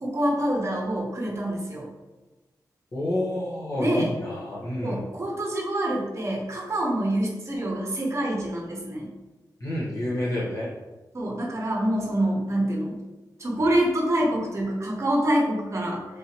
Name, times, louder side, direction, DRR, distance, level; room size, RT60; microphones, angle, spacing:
voice 1, 0.0-1.9 3.8-4.1 4.8-9.1 11.1-13.0 13.4-16.1, right 1 dB, 40° right, -1 dB, 0.8 m, -26 dB
voice 2, 2.9-5.0 9.6-10.7, left 1 dB, 45° left, -8 dB, 0.8 m, -29 dB
3.2 x 2.7 x 2.9 m, 1.1 s
wide cardioid pair, 75°, 7 cm